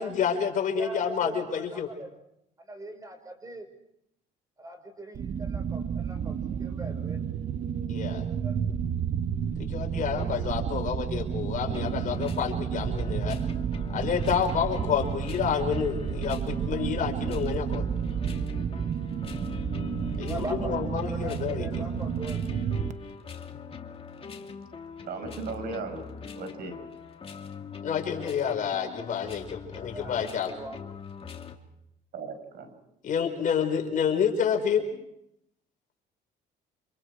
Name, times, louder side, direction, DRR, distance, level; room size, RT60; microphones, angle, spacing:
voice 1, 0.0-1.9 7.9-8.2 9.6-13.4 13.9-17.9 20.2-21.8 27.8-30.5 33.0-34.9, left 7 dB, 50° left, 3 dB, 5.3 m, -29 dB
voice 2, 0.7-2.1 2.7-3.7 4.6-7.2 8.3-8.6 9.9-10.5 20.3-22.5 28.2-28.5 29.0-29.2 29.7-30.8, right 1 dB, 20° right, 7 dB, 5.5 m, -41 dB
sound 1, 5.2-22.9, right 8 dB, 45° right, 1.0 m, -31 dB
sound 2, 11.7-31.6, left 6 dB, 35° left, 2.7 m, -42 dB
voice 3, 25.0-26.0 26.4-26.8 32.1-32.7, right 4 dB, 65° right, 8 dB, 5.1 m, -36 dB
29.5 x 27.5 x 4.9 m, 0.79 s
cardioid pair, 110°, 17 cm